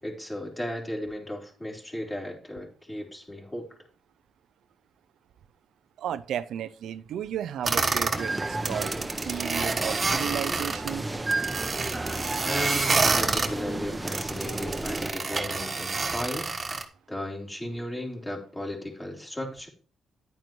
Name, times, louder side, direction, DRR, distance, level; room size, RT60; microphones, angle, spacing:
voice 1, 0.0-3.7 12.4-16.5 17.1-19.7, left 1 dB, 20° left, 3.8 m, -35 dB
voice 2, 6.0-11.0, right 10 dB, 80° right, 0.4 m, -34 dB
sound 1, 7.6-8.2 8.5-10.9 11.3-13.5 14.1-16.8, right 4 dB, 35° right, 1.3 m, -28 dB
sound 2, 8.1-15.1, right 2 dB, 15° right, 0.9 m, -33 dB
10.5 x 9.1 x 3.1 m
cardioid pair, 70°, 0 cm